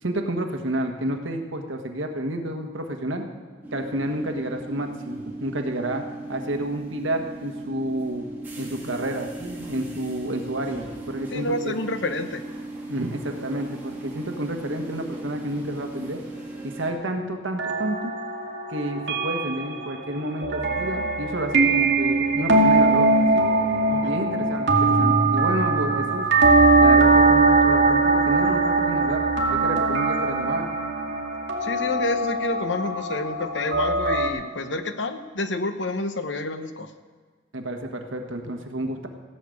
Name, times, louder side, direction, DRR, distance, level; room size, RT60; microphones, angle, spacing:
voice 1, 0.0-3.2 3.7-6.0 6.3-8.2 8.6-11.7 12.9-16.2 16.6-18.1 18.7-23.5 24.0-26.3 26.8-30.7 37.5-39.1, right 1 dB, 85° right, 4 dB, 1.5 m, -30 dB
sound 1, 3.6-16.9, right 2 dB, 10° right, 2.6 m, -37 dB
voice 2, 11.3-12.4 23.9-24.2 31.6-36.9, left 2 dB, 70° left, 9 dB, 0.9 m, -29 dB
sound 2, 17.6-34.3, right 3 dB, 60° right, 2.3 m, -21 dB
16.5 x 6.7 x 8.4 m, 1.5 s
head